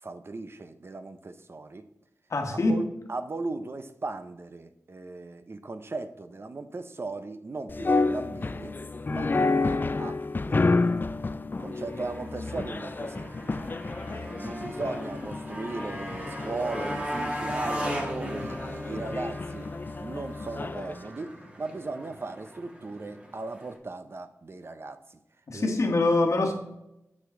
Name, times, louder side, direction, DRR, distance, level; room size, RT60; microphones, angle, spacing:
voice 1, 0.0-1.9 2.5-8.8 9.1-11.1 11.6-13.7 14.0-19.7 20.0-25.2 25.5-25.8, right 3 dB, 50° right, 10 dB, 0.7 m, -38 dB
voice 2, 2.3-2.8 25.5-26.5, left 2 dB, 70° left, 3 dB, 1.3 m, -24 dB
sound 1, 7.7-21.0, left 3 dB, 35° left, 0.4 m, -30 dB
Motorcycle, 11.7-23.8, equal, 20° right, 1.8 m, -38 dB
8.0 x 6.1 x 3.8 m, 0.84 s
wide cardioid pair, 75°, 5 cm